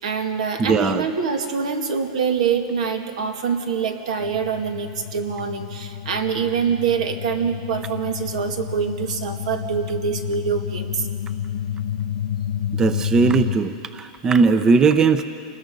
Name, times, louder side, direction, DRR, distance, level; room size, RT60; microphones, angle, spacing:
voice 1, 0.0-11.1, right 6 dB, 80° right, 5 dB, 2.2 m, -25 dB
voice 2, 0.6-1.0 12.7-15.2, right 4 dB, 15° right, 10 dB, 0.7 m, -18 dB
sound 1, 4.2-13.6, left 10 dB, 75° left, 1.2 m, -30 dB
29.0 x 20.5 x 5.3 m, 2.4 s
supercardioid pair, 150°, 4 cm